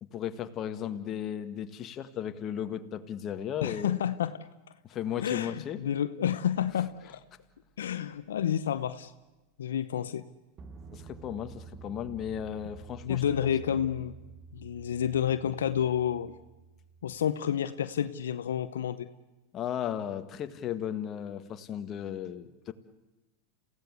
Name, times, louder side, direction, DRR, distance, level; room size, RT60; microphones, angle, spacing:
voice 1, 0.0-4.1 4.8-5.8 10.9-13.2 19.5-22.7, left 9 dB, 35° left, 9 dB, 1.8 m, -35 dB
voice 2, 3.6-4.3 5.2-7.0 7.8-9.1 9.6-10.2 13.0-14.1 14.5-16.3 17.0-19.1, left 9 dB, 85° left, 11 dB, 0.8 m, -29 dB
sound 1, 10.6-17.3, right 5 dB, 35° right, 1.6 m, -49 dB
28.0 x 16.5 x 8.2 m, 1.1 s
hypercardioid pair, 105°, 0 cm